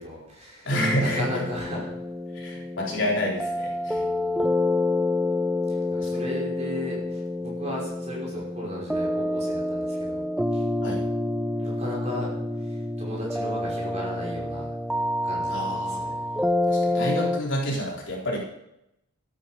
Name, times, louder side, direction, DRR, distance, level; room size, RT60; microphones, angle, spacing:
voice 1, 0.0-0.7 1.0-1.9 3.9-4.4 5.7-10.2 10.5-10.6 11.6-14.7 15.2-15.6 15.9-16.2, left 1 dB, 30° right, -4 dB, 5.4 m, -36 dB
voice 2, 0.6-1.3 2.3-4.0 10.8-11.1 15.5-16.0 16.7-18.4, equal, 55° left, -3 dB, 4.0 m, -28 dB
sound 1, 0.7-17.4, left 1 dB, 5° right, 0.3 m, -28 dB
13.5 x 9.3 x 5.3 m, 0.83 s
head